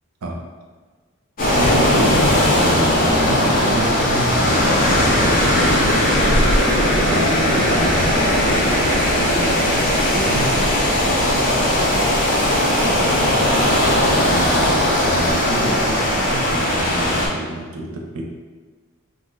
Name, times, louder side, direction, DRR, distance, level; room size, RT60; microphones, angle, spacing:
sound 1, 1.4-17.3, left 1 dB, 40° left, 0.6 m, -18 dB
voice 1, 1.4-6.6 7.0-12.4 12.8-13.4 14.2-14.7 15.0-18.2, right 1 dB, 75° right, 1 dB, 0.5 m, -29 dB
2.5 x 2.1 x 3.7 m, 1.4 s
head